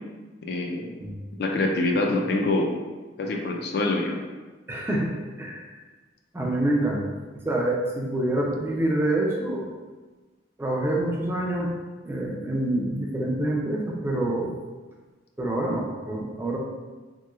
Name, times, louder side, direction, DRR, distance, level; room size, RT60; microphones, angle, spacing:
voice 1, 0.4-0.9 1.4-2.7 3.2-4.2, left 2 dB, 60° left, 1 dB, 0.4 m, -25 dB
voice 2, 4.7-5.7 6.3-7.1 7.5-9.7 10.6-11.7 12.0-14.6 15.4-16.6, right 1 dB, 15° right, -2 dB, 0.3 m, -26 dB
3.1 x 2.9 x 2.3 m, 1.3 s
head